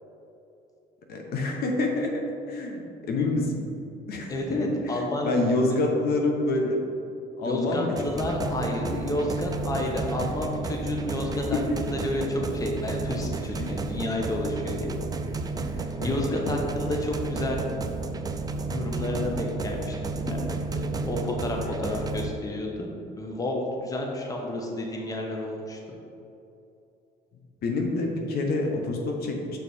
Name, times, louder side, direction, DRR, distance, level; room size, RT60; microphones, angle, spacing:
voice 1, 1.1-2.2 2.5-3.7 4.1-6.8 7.4-7.9 11.7-11.8 13.6-13.7 16.0-16.2 27.6-29.6, left 2 dB, 65° left, 1 dB, 0.9 m, -27 dB
voice 2, 4.3-5.4 7.5-15.0 15.8-17.6 18.7-22.9 23.2-25.8, left 1 dB, 20° left, 0 dB, 0.9 m, -30 dB
sound 1, 8.0-22.3, right 3 dB, 20° right, 0.4 m, -32 dB
6.5 x 4.0 x 4.2 m, 2.7 s
cardioid pair, 110°, 17 cm